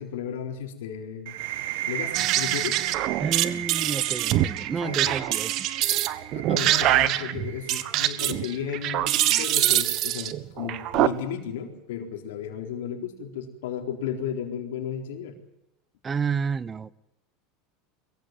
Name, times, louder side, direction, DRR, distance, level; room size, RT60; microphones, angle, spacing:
voice 1, 0.0-1.4 1.9-2.8 4.8-5.2 6.3-15.4, left 8 dB, 85° left, 4.1 m, -34 dB
sound 1, 1.3-8.8, right 13 dB, 75° right, 1.4 m, -36 dB
sound 2, 2.1-11.1, right 14 dB, 50° right, 1.4 m, -24 dB
voice 2, 3.2-5.7 6.5-6.7 16.0-17.0, right 6 dB, 20° right, 0.9 m, -30 dB
22.5 x 15.0 x 9.3 m
supercardioid pair, 130°, 0 cm